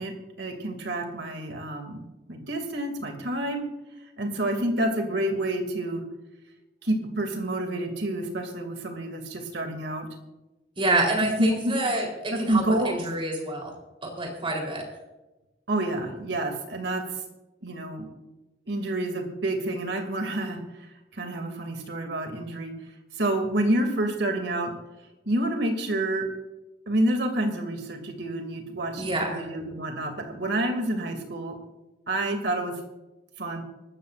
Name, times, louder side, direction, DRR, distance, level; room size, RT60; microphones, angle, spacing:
voice 1, 0.0-3.7 4.2-6.0 6.8-10.1 11.4-11.7 12.3-13.0 15.7-17.0 17.6-18.1 18.7-20.6 21.1-22.7 23.2-24.7 25.3-26.3 26.9-31.6 32.1-32.8 33.4-33.6, right 1 dB, 70° right, 4 dB, 2.7 m, -28 dB
voice 2, 10.8-13.7 14.0-14.9 29.0-29.4, right 2 dB, 30° right, 1 dB, 3.8 m, -27 dB
25.0 x 13.0 x 2.6 m, 1.0 s
head